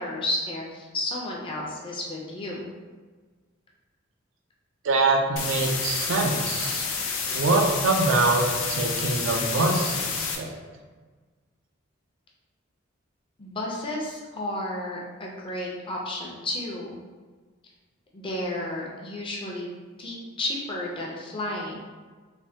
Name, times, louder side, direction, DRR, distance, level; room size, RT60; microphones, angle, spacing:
voice 1, 0.0-2.7 13.4-17.0 18.1-19.7 20.0-21.7, left 1 dB, 25° left, -2 dB, 0.5 m, -32 dB
voice 2, 4.8-6.8 7.3-10.5, right 2 dB, 70° right, 2 dB, 0.4 m, -24 dB
sound 1, 5.4-10.4, left 5 dB, 85° left, 0.4 m, -29 dB
3.2 x 2.1 x 2.7 m, 1.4 s
head